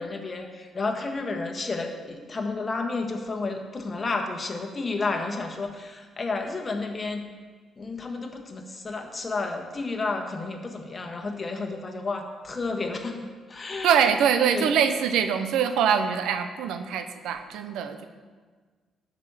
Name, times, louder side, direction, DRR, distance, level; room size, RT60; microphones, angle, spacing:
voice 1, 0.0-7.3 7.8-14.1 14.5-14.8, left 3 dB, 35° left, 4 dB, 1.5 m, -31 dB
voice 2, 13.8-18.0, right 7 dB, 85° right, 9 dB, 0.7 m, -23 dB
11.0 x 5.2 x 7.2 m, 1.5 s
cardioid pair, 90°, 0 cm